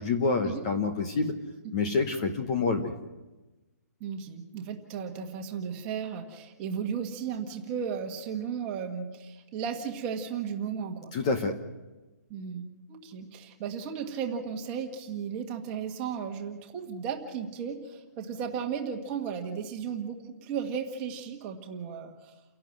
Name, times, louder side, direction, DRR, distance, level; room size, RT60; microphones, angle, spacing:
voice 1, 0.0-1.3 1.7-2.9 11.1-11.6, left 4 dB, 20° left, 5 dB, 1.0 m, -27 dB
voice 2, 4.0-11.1 12.3-22.3, right 7 dB, 15° right, 3 dB, 1.6 m, -35 dB
30.0 x 11.5 x 7.7 m, 1.1 s
hypercardioid pair, 175°, 9 cm